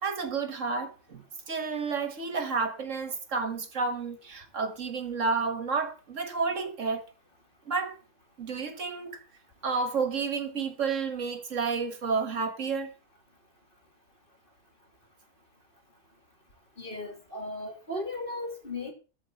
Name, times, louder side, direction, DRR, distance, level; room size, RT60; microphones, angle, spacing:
voice 1, 0.0-7.1 7.7-8.0 8.4-9.2 9.6-12.9, right 4 dB, 65° right, 1.9 m, -31 dB
voice 2, 16.8-18.9, left 2 dB, 40° left, 3.5 m, -36 dB
14.0 x 5.0 x 7.8 m
omnidirectional pair, 1.4 m